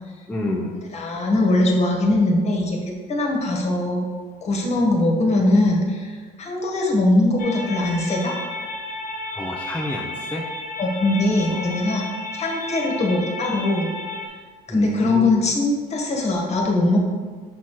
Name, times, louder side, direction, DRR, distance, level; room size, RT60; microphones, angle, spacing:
voice 1, 0.3-0.8 9.3-10.5 11.5-11.7 14.7-15.3, left 1 dB, 10° left, -3 dB, 0.7 m, -29 dB
voice 2, 0.9-2.8 3.1-4.1 4.4-8.3 10.8-12.1 12.3-13.9 14.7-17.0, left 2 dB, 40° left, 0 dB, 1.4 m, -21 dB
sound 1, 7.4-14.3, left 2 dB, 55° left, 1.1 m, -33 dB
5.9 x 4.3 x 4.7 m, 1.5 s
cardioid pair, 110°, 17 cm